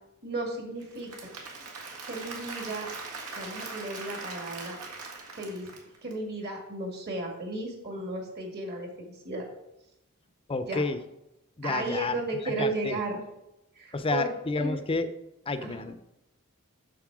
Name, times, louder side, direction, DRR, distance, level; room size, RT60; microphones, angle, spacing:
voice 1, 0.2-1.3 2.1-2.9 3.4-4.8 5.4-5.7 6.0-9.5 10.7-10.8 11.6-13.2 13.8-14.3 14.6-14.8 15.6-15.9, right 2 dB, 45° right, 1 dB, 2.1 m, -34 dB
Applause / Crowd, 0.8-6.1, right 3 dB, 80° right, 1.8 m, -41 dB
voice 2, 10.5-11.0 11.6-12.2 12.6-13.0 13.9-15.1 15.5-16.0, left 3 dB, 25° left, 11 dB, 0.5 m, -30 dB
7.5 x 6.7 x 4.8 m, 0.89 s
head